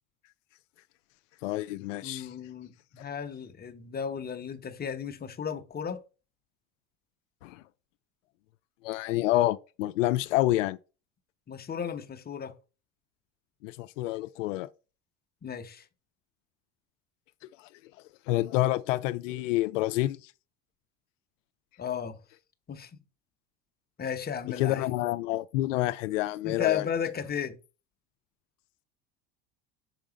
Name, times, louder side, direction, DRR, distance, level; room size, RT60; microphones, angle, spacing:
voice 1, 1.4-2.3 7.4-7.6 8.8-10.8 13.6-14.7 18.3-20.2 24.6-26.9, left 16 dB, 85° left, 0.5 m, -28 dB
voice 2, 2.0-6.0 11.5-12.5 15.4-15.9 21.8-22.2 22.7-23.0 24.0-24.9 26.4-27.6, left 7 dB, 25° left, 1.0 m, -35 dB
5.9 x 3.6 x 5.0 m
hypercardioid pair, 85°, 37 cm